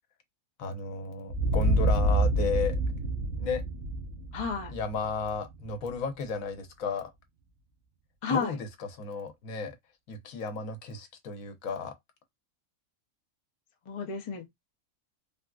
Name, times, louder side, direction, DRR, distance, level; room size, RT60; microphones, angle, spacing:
voice 1, 0.6-2.8 3.4-3.6 4.7-7.1 8.3-9.8 10.1-11.9, left 4 dB, 80° left, 1.1 m, -33 dB
sound 1, 1.3-5.9, right 1 dB, 70° right, 1.0 m, -27 dB
voice 2, 4.3-4.7 8.2-8.6 13.9-14.5, left 5 dB, 50° left, 0.3 m, -32 dB
3.4 x 2.4 x 2.3 m
omnidirectional pair, 1.4 m